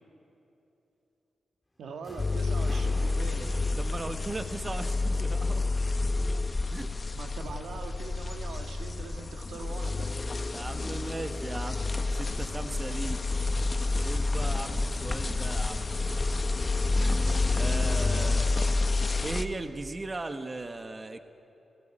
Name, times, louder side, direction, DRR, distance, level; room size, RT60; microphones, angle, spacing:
voice 1, 1.8-3.5 7.1-10.1 18.1-18.6, right 4 dB, 80° right, 4 dB, 1.7 m, -42 dB
sound 1, 2.0-5.9, left 1 dB, 20° left, 1.9 m, -46 dB
sound 2, 2.2-19.5, left 3 dB, 40° left, 1.3 m, -29 dB
voice 2, 3.7-5.7 6.7-6.9 10.5-13.2 14.0-16.4 16.9-18.5 19.2-21.2, right 2 dB, 35° right, 7 dB, 1.4 m, -38 dB
29.0 x 16.5 x 9.1 m, 3.0 s
supercardioid pair, 45°, 0 cm